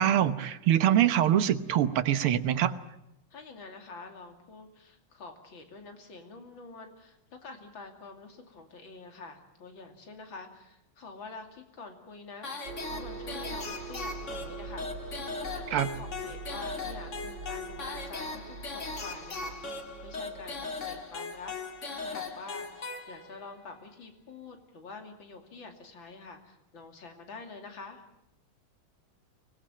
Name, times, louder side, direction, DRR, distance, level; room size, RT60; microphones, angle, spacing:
voice 1, 0.0-2.7 15.7-15.9, right 10 dB, 80° right, 12 dB, 2.0 m, -24 dB
voice 2, 3.3-12.6 12.9-21.6 22.0-28.0, left 3 dB, 65° left, 5 dB, 3.4 m, -47 dB
sound 1, 12.4-23.5, left 3 dB, 35° left, 2.1 m, -39 dB
sound 2, 12.6-22.1, right 4 dB, 60° right, 3.3 m, -44 dB
24.0 x 19.0 x 8.8 m, 0.87 s
omnidirectional pair, 2.4 m